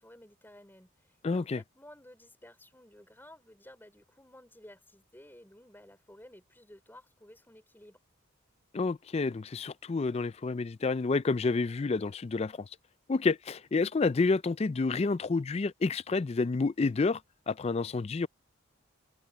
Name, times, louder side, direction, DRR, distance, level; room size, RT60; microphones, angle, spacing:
voice 1, 0.0-8.0, left 1 dB, 10° left, 4.7 m, -54 dB
voice 2, 1.2-1.6 8.7-12.7 13.1-17.2 17.5-18.3, left 3 dB, 30° left, 0.3 m, -29 dB
head